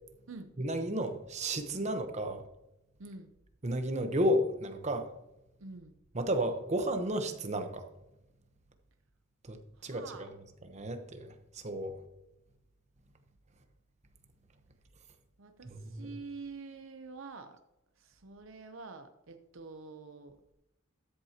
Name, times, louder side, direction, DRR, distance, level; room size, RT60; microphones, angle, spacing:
voice 1, 0.6-2.4 3.6-5.1 6.1-7.9 9.4-10.3 10.6-11.9 15.6-16.2, equal, 35° right, 7 dB, 1.0 m, -33 dB
voice 2, 3.0-3.3 5.6-5.9 9.8-10.3 15.4-17.6 18.0-20.4, right 4 dB, 70° right, 7 dB, 0.7 m, -47 dB
13.0 x 7.6 x 2.9 m, 0.92 s
head